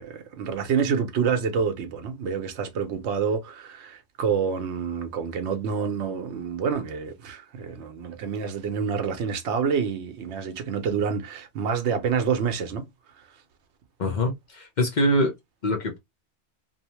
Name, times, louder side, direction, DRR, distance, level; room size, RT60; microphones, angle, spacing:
voice 1, 0.0-12.9 13.2-13.3, right 6 dB, 75° right, 0.9 m, -27 dB
voice 2, 14.0-15.3 15.6-16.0, equal, 45° left, 0.7 m, -24 dB
2.6 x 2.1 x 2.8 m
omnidirectional pair, 1.2 m